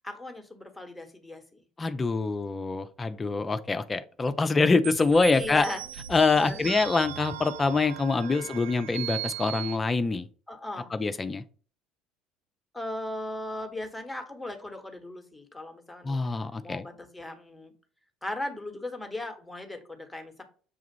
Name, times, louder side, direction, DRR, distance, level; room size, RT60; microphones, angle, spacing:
voice 1, 0.0-1.6 2.3-2.6 5.3-5.8 6.3-6.7 8.2-8.5 10.5-10.9 12.7-16.2 16.6-17.7 18.2-20.4, left 1 dB, 5° left, 3 dB, 1.1 m, -38 dB
voice 2, 1.8-5.7 6.1-10.3 10.9-11.4 16.0-16.9, left 3 dB, 20° left, 10 dB, 0.5 m, -25 dB
sound 1, 4.8-9.8, right 14 dB, 75° right, 0.4 m, -38 dB
6.7 x 2.4 x 3.0 m, 0.40 s
figure-of-eight pair, 60°, 0 cm